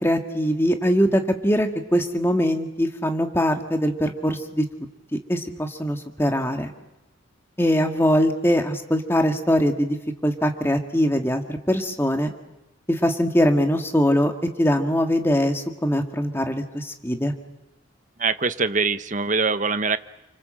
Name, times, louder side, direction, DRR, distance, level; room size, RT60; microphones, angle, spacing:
voice 1, 0.0-4.7 5.1-6.7 7.6-10.0 10.2-12.3 12.9-14.3 14.6-17.3, equal, 10° left, 5 dB, 1.8 m, -22 dB
voice 2, 18.2-20.0, right 4 dB, 35° right, 11 dB, 1.1 m, -23 dB
30.0 x 25.5 x 7.7 m, 0.96 s
head